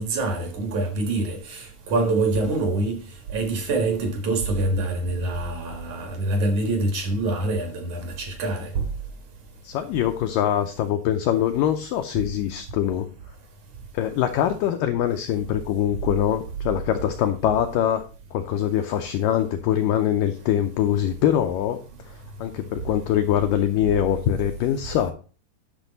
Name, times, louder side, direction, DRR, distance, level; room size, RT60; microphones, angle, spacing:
voice 1, 0.0-3.0 3.3-8.8, right 2 dB, 60° right, 2.5 m, -25 dB
voice 2, 9.6-13.1 13.9-18.0 18.3-25.1, left 10 dB, 85° left, 1.9 m, -23 dB
10.5 x 6.1 x 4.0 m
omnidirectional pair, 4.6 m